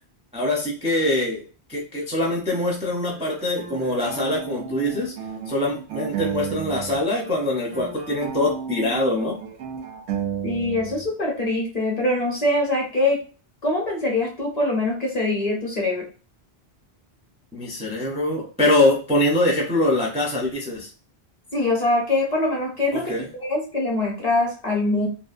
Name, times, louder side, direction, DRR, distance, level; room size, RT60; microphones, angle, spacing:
voice 1, 0.3-1.4 1.7-5.1 5.5-9.4 17.5-20.9 22.9-23.2, left 1 dB, 10° right, -3 dB, 0.4 m, -23 dB
sound 1, 3.1-7.0 7.2-11.1, right 8 dB, 80° right, 0.9 m, -33 dB
voice 2, 10.4-13.2 13.6-16.0 21.5-25.1, left 2 dB, 45° left, -1 dB, 0.7 m, -23 dB
2.7 x 2.1 x 2.5 m, 0.36 s
omnidirectional pair, 1.1 m